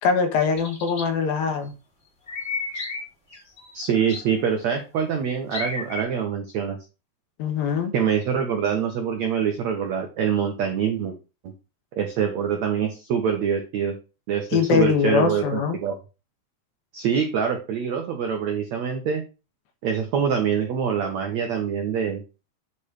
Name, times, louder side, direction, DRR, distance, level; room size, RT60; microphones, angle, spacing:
voice 1, 0.0-1.7 7.4-7.9 14.5-15.8, left 6 dB, 70° left, 5 dB, 2.7 m, -22 dB
sound 1, 0.6-1.0 2.3-3.0 3.3-4.5 5.5-6.0, left 3 dB, 20° left, 2.3 m, -32 dB
voice 2, 3.7-6.8 7.9-11.1 12.0-13.9 14.3-15.9 16.9-19.2 19.8-22.2, right 7 dB, 90° right, 4 dB, 1.5 m, -25 dB
8.4 x 4.2 x 4.9 m, 0.30 s
omnidirectional pair, 4.9 m